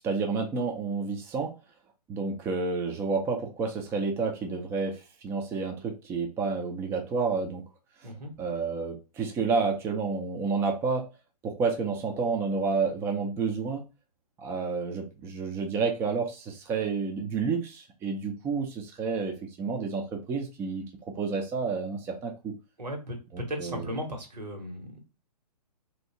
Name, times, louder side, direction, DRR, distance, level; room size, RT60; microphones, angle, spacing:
voice 1, 0.0-1.5 2.1-7.6 8.4-11.0 11.4-13.8 14.4-22.5 23.3-23.9, right 4 dB, 10° right, 2 dB, 0.4 m, -30 dB
voice 2, 22.8-25.0, equal, 90° right, 3 dB, 1.4 m, -36 dB
3.0 x 2.7 x 2.8 m, 0.30 s
hypercardioid pair, 130°, 21 cm